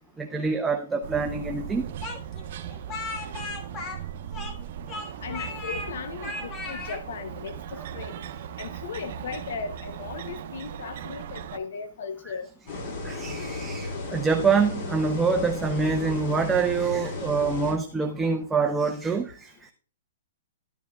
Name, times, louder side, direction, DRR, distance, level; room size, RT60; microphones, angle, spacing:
voice 1, 0.2-1.9 13.0-19.7, right 5 dB, 10° right, 0.6 m, -25 dB
sound 1, 1.0-11.6, right 9 dB, 55° right, 0.9 m, -38 dB
Speech, 2.0-4.6 4.9-5.9 6.2-7.0, left 2 dB, 25° left, 1.6 m, -36 dB
voice 2, 5.2-8.2 8.6-12.5, left 6 dB, 70° left, 0.7 m, -37 dB
sound 2, 12.7-17.7, left 2 dB, 40° left, 5.5 m, -34 dB
12.5 x 9.4 x 2.3 m
hypercardioid pair, 150°, 0 cm